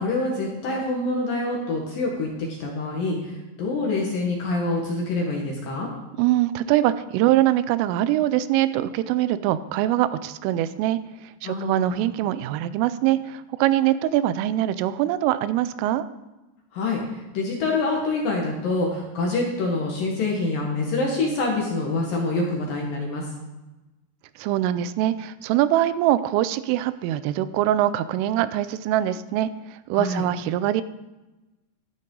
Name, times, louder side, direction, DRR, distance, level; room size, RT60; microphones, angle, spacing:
voice 1, 0.0-5.9 11.4-11.9 16.7-23.3 29.9-30.2, left 2 dB, 65° left, -1 dB, 2.3 m, -26 dB
voice 2, 6.2-16.1 24.4-30.8, right 13 dB, 85° right, 14 dB, 3.0 m, -23 dB
12.0 x 12.0 x 3.8 m, 1.1 s
omnidirectional pair, 5.8 m